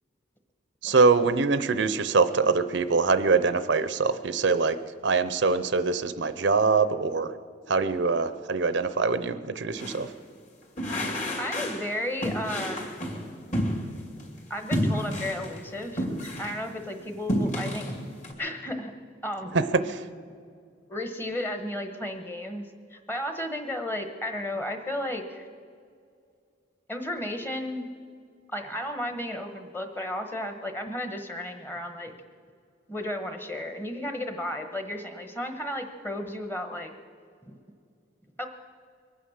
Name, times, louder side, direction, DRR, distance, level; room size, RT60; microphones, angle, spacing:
voice 1, 0.8-4.8 5.0-7.3 7.7-10.1 19.5-20.0, right 4 dB, 65° right, 12 dB, 0.6 m, -23 dB
sound 1, 9.7-10.1 10.8-11.9 12.2-14.3 14.7-16.6 17.0-18.3, equal, 40° left, 2.7 m, -30 dB
voice 2, 11.4-13.0 14.5-16.0 16.4-17.9 18.4-18.9 19.2-19.6 20.9-25.5 26.9-27.9 28.5-32.1 32.9-36.9 37.5-37.6 38.4-38.5, left 1 dB, 10° left, 6 dB, 1.1 m, -33 dB
23.0 x 9.3 x 6.4 m, 2.2 s
head